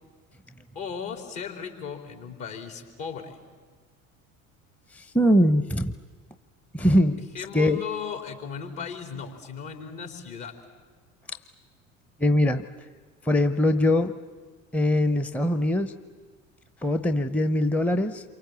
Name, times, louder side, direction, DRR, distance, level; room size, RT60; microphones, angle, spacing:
voice 1, 0.7-3.4 7.2-10.5, left 6 dB, 55° left, 4 dB, 4.3 m, -36 dB
voice 2, 4.9-5.9 6.7-7.2 7.5-7.8 12.2-12.7 13.2-14.2 14.7-16.0 16.8-18.2, left 1 dB, 5° left, 10 dB, 0.9 m, -22 dB
27.5 x 24.0 x 8.3 m, 1.5 s
figure-of-eight pair, 65°, 40 cm